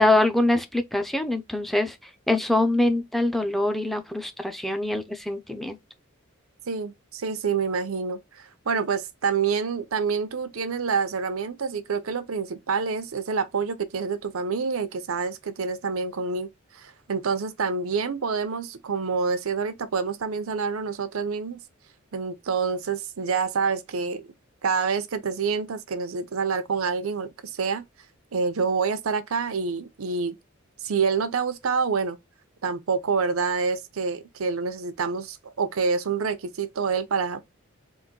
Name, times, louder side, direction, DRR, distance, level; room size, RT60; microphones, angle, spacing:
voice 1, 0.0-2.0 2.3-5.8, left 2 dB, ahead, 0.5 m, -24 dB
voice 2, 6.7-16.5 16.7-21.6 22.1-24.3 24.6-27.8 28.3-30.4 30.8-32.2 32.6-37.4, right 5 dB, 85° right, 0.6 m, -27 dB
3.9 x 2.6 x 3.7 m
head